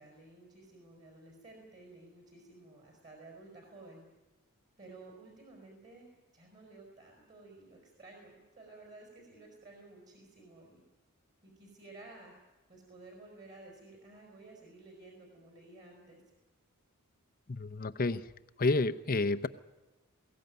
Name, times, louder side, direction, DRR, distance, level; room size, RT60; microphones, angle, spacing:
voice 1, 0.0-4.0 4.8-6.1 6.3-10.8 11.4-12.3 12.7-16.2, right 2 dB, 35° right, 0 dB, 4.9 m, -54 dB
voice 2, 17.5-18.3 18.6-19.5, left 3 dB, 40° left, 10 dB, 0.7 m, -30 dB
22.0 x 17.0 x 9.3 m, 1.1 s
head